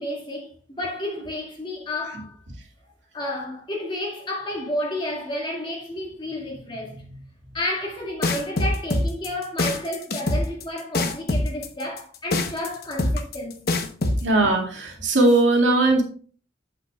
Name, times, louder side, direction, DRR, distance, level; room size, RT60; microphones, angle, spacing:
voice 1, 0.0-2.3 3.1-7.2 7.5-13.9, left 1 dB, 25° left, 2.0 m, -31 dB
sound 1, 8.2-14.2, left 2 dB, 55° left, 0.9 m, -23 dB
voice 2, 14.2-16.0, right 2 dB, 80° right, 2.2 m, -19 dB
8.2 x 7.9 x 2.3 m
head